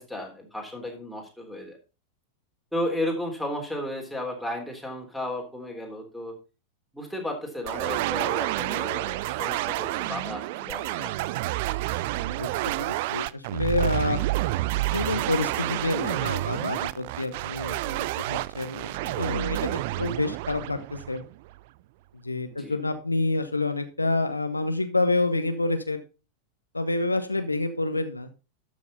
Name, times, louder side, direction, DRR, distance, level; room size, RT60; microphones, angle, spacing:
voice 1, 0.0-1.8 2.7-6.4 6.9-11.2 22.5-22.8, left 1 dB, ahead, -1 dB, 3.5 m, -34 dB
sound 1, 7.7-21.5, right 17 dB, 50° right, 0.4 m, -29 dB
voice 2, 12.2-14.2 14.9-21.2 22.2-26.0 26.7-28.3, left 2 dB, 80° left, 8 dB, 0.9 m, -28 dB
13.0 x 6.4 x 4.0 m, 0.31 s
figure-of-eight pair, 90°, 0 cm